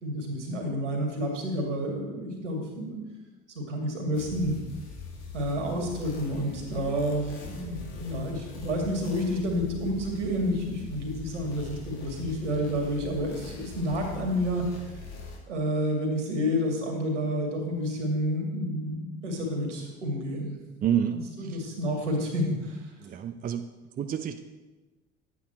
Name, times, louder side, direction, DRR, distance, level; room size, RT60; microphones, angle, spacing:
voice 1, 0.0-3.0 3.5-4.6 5.3-14.7 15.5-20.6 21.1-22.8, equal, 75° right, 2 dB, 2.2 m, -30 dB
sound 1, 4.1-15.4, left 4 dB, 60° left, 2.2 m, -42 dB
voice 2, 20.8-21.2 23.0-23.6 24.0-24.4, right 9 dB, 25° right, 8 dB, 0.6 m, -28 dB
11.0 x 8.6 x 4.4 m, 1.2 s
figure-of-eight pair, 65°, 36 cm